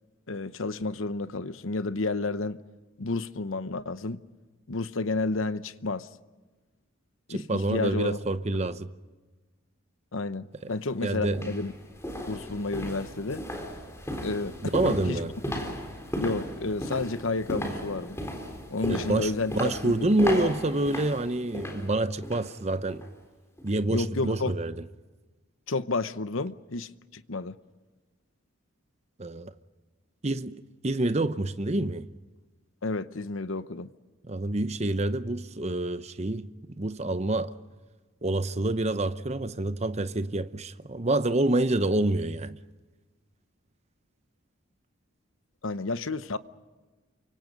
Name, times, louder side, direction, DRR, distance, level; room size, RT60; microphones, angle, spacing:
voice 1, 0.3-2.6 3.0-4.2 4.7-6.1 7.3-8.2 10.1-11.7 12.3-13.4 14.2-14.6 14.8-15.2 16.2-18.2 18.7-20.1 20.3-20.5 23.9-24.5 25.7-27.6 32.8-33.9 45.6-46.4, left 3 dB, 70° left, 0.9 m, -31 dB
voice 2, 7.3-8.9 11.0-11.5 14.6-15.3 18.9-23.0 23.6-24.8 29.2-29.5 30.2-32.1 34.2-37.5 38.2-42.6, right 2 dB, 30° right, 0.8 m, -27 dB
sound 1, 10.6-10.7 11.3-22.5 22.9-23.1 23.6-23.7, equal, 15° left, 3.7 m, -35 dB
29.0 x 25.0 x 5.3 m
head